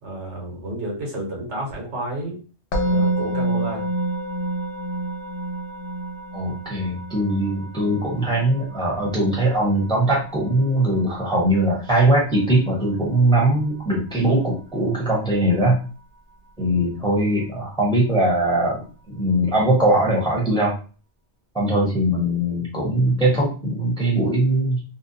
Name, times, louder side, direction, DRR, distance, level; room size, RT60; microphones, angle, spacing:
voice 1, 0.0-2.4 2.8-3.9, right 1 dB, 80° right, -1 dB, 1.3 m, -31 dB
Musical instrument, 2.7-13.8, right 1 dB, 90° left, 0.9 m, -29 dB
voice 2, 6.3-15.8 16.6-18.8 19.1-20.7 21.5-24.8, right 1 dB, 5° left, -3 dB, 0.7 m, -21 dB
2.7 x 2.1 x 2.6 m, 0.37 s
omnidirectional pair, 1.2 m